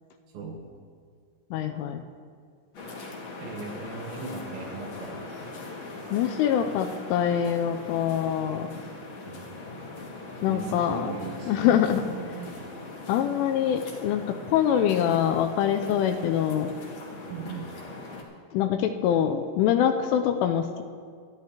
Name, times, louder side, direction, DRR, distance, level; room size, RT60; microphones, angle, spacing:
voice 1, 1.5-2.0 6.1-8.7 10.4-11.2 11.5-12.1 13.1-16.7 18.5-20.8, left 9 dB, 85° left, 6 dB, 2.9 m, -24 dB
sound 1, 2.7-18.2, left 2 dB, 65° left, 1.7 m, -41 dB
voice 2, 3.4-5.3 9.3-9.6 10.4-11.8 12.1-12.6 17.2-17.7, right 4 dB, 75° right, 0 dB, 3.1 m, -38 dB
23.0 x 12.5 x 2.9 m, 2.1 s
omnidirectional pair, 5.8 m